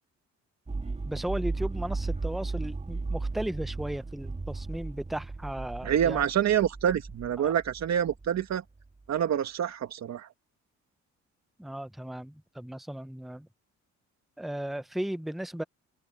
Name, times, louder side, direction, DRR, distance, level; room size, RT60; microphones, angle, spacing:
sound 1, 0.7-8.8, right 3 dB, 20° right, 2.5 m, -35 dB
voice 1, 1.0-6.2 7.4-7.5 11.6-13.5 14.4-15.6, right 1 dB, ahead, 0.8 m, -35 dB
voice 2, 5.8-8.6 9.1-10.3, right 9 dB, 60° right, 2.0 m, -27 dB
open air
cardioid pair, 90°, 30 cm